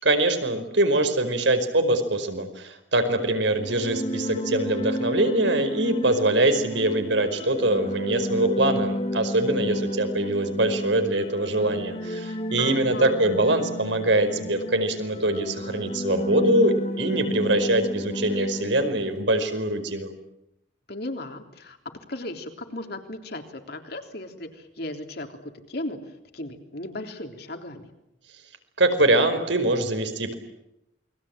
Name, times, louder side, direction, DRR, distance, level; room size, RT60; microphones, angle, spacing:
voice 1, 0.0-20.1 28.8-30.3, right 1 dB, 75° right, 7 dB, 5.0 m, -23 dB
sound 1, 3.5-19.2, equal, 35° left, 1.8 m, -31 dB
voice 2, 12.6-13.2 20.9-21.8 22.1-27.9, left 1 dB, 55° left, 5 dB, 3.6 m, -36 dB
29.0 x 23.0 x 9.0 m, 0.84 s
head